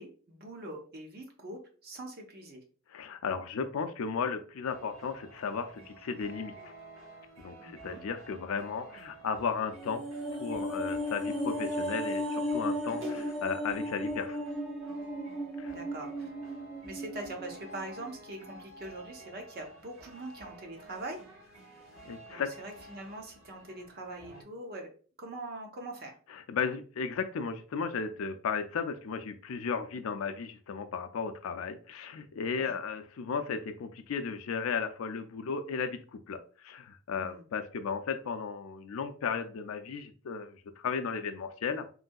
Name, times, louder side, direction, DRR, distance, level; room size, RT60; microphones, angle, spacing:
voice 1, 0.0-2.6 7.6-8.0 15.6-16.3 16.8-21.2 22.3-24.9 25.2-26.1 32.6-32.8 37.2-37.4, right 2 dB, 45° right, 1 dB, 0.7 m, -43 dB
voice 2, 2.9-6.5 7.4-10.0 10.4-14.4 15.6-15.7 22.0-22.5 26.3-41.9, left 5 dB, 85° left, 8 dB, 0.4 m, -35 dB
sound 1, 4.7-24.4, right 2 dB, 65° right, 1.0 m, -51 dB
sound 2, 9.7-18.2 18.5-18.6, equal, ahead, 0.3 m, -35 dB
3.2 x 2.7 x 2.2 m, 0.39 s
head